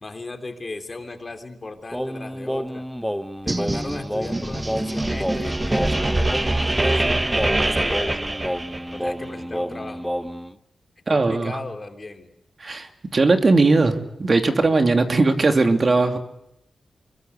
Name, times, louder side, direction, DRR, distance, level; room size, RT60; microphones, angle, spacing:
voice 1, 0.0-2.8 3.4-7.2 7.5-8.3 8.9-10.0 11.1-12.3, left 3 dB, 35° left, 7 dB, 3.3 m, -36 dB
Singing, 1.9-10.5, equal, ahead, 1.1 m, -30 dB
sound 1, 3.5-9.1, right 2 dB, 20° right, 1.4 m, -24 dB
voice 2, 11.1-11.6 12.6-16.2, right 3 dB, 45° right, 6 dB, 2.7 m, -19 dB
26.0 x 21.5 x 8.2 m, 0.80 s
cardioid pair, 75°, 0 cm